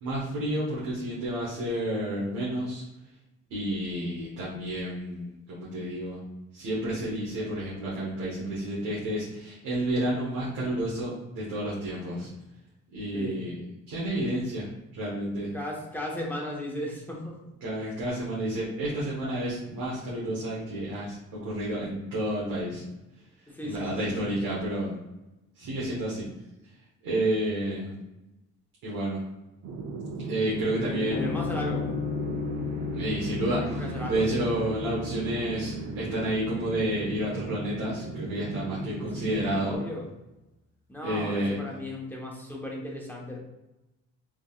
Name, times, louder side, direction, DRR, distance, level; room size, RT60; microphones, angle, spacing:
voice 1, 0.0-2.8 3.5-6.2 6.5-12.3 12.9-13.5 13.9-14.7 14.9-15.5 17.6-22.8 23.6-24.9 25.5-26.3 27.0-27.9 28.8-29.2 30.3-31.3 32.9-39.8 41.0-41.5, right 1 dB, 85° right, -7 dB, 1.3 m, -30 dB
voice 2, 15.5-17.5 23.5-24.3 30.7-31.9 33.5-34.2 39.1-40.1 40.9-43.4, left 1 dB, 5° left, -3 dB, 1.1 m, -36 dB
sound 1, 29.6-39.7, right 3 dB, 65° right, 0.7 m, -36 dB
sound 2, 31.1-37.8, left 8 dB, 30° left, 0.5 m, -36 dB
3.6 x 3.5 x 2.4 m, 0.98 s
cardioid pair, 90°, 30 cm